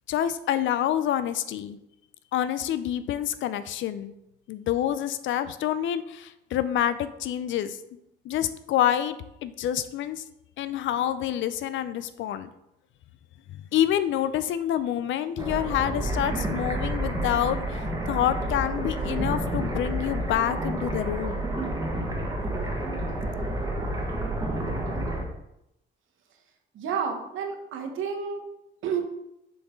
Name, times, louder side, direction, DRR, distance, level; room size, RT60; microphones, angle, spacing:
voice 1, 0.1-1.8 2.3-4.1 4.5-7.8 8.2-10.2 10.6-12.5 13.5-21.4, left 11 dB, 75° left, 13 dB, 0.5 m, -27 dB
sound 1, 15.4-25.2, right 1 dB, 15° right, 1.4 m, -29 dB
voice 2, 26.7-28.4 28.8-29.0, right 6 dB, 80° right, 4 dB, 1.0 m, -30 dB
6.7 x 4.0 x 3.7 m, 0.83 s
cardioid pair, 90°, 20 cm